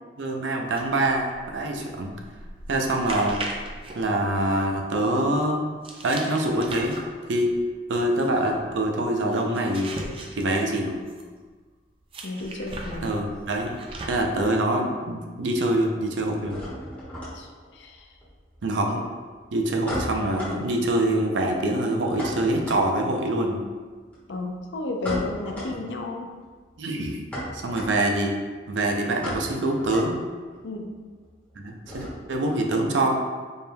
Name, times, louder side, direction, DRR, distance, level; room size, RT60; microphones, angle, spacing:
voice 1, 0.2-2.1 2.7-3.4 3.9-5.6 6.0-7.0 7.3-7.5 7.9-9.9 10.4-10.9 13.0-13.7 14.1-16.6 18.6-19.0 19.5-23.6 26.8-27.2 27.5-28.4 28.7-30.2 31.6-33.2, right 1 dB, 85° right, 1 dB, 0.5 m, -25 dB
sound 1, 0.7-4.9 5.8-11.4 12.1-14.4, right 2 dB, 30° right, 0.3 m, -39 dB
voice 2, 12.2-13.1 17.3-18.1 18.9-19.0 24.3-26.3 30.6-30.9, left 2 dB, 75° left, 2 dB, 0.5 m, -32 dB
sound 2, 13.2-14.2 14.5-15.2 15.4-32.5, equal, 10° left, 0.9 m, -38 dB
4.3 x 2.2 x 3.4 m, 1.4 s
head